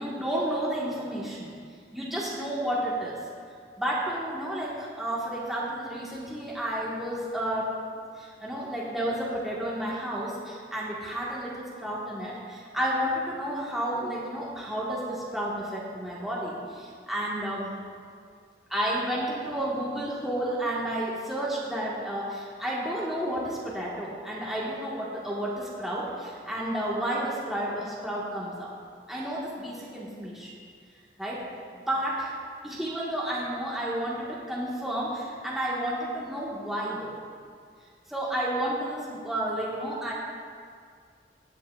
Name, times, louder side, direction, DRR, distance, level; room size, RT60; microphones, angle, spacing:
voice 1, 0.0-1.5 1.9-3.2 3.8-7.7 8.2-17.7 18.7-28.7 29.1-30.5 31.2-31.4 31.7-32.3 32.6-37.1 38.1-40.1, right 1 dB, ahead, -7 dB, 1.4 m, -31 dB
18.0 x 8.3 x 2.4 m, 2.1 s
head